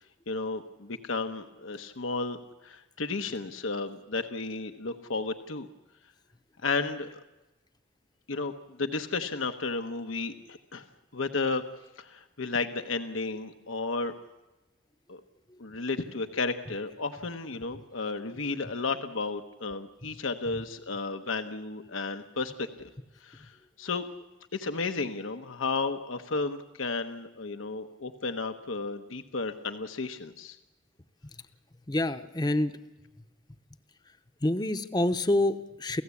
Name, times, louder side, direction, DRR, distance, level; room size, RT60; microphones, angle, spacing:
voice 1, 0.3-5.7 6.6-7.2 8.3-8.5 8.8-10.8 11.1-11.6 12.0-14.1 15.1-15.2 15.6-22.9 23.2-23.5 23.8-24.1 24.5-30.6, left 3 dB, 85° left, 7 dB, 1.1 m, -33 dB
voice 2, 31.9-32.7 34.4-36.0, left 1 dB, 20° left, 9 dB, 0.8 m, -27 dB
29.0 x 15.5 x 8.4 m, 1.1 s
head